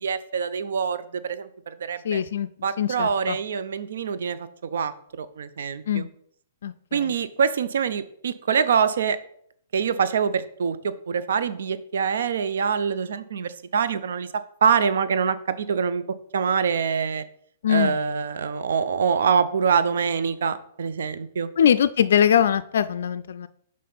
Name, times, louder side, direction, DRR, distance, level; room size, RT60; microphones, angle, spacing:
voice 1, 0.0-2.2 2.6-4.9 5.2-6.1 6.9-9.2 9.7-14.3 14.6-16.0 16.3-17.2 17.7-21.5, right 6 dB, 75° right, 12 dB, 0.5 m, -25 dB
voice 2, 2.0-2.5 2.8-3.4 5.9-6.1 6.6-7.1 17.6-18.0 21.6-23.5, left 9 dB, 70° left, 11 dB, 0.3 m, -22 dB
5.8 x 3.7 x 5.5 m, 0.65 s
hypercardioid pair, 135°, 0 cm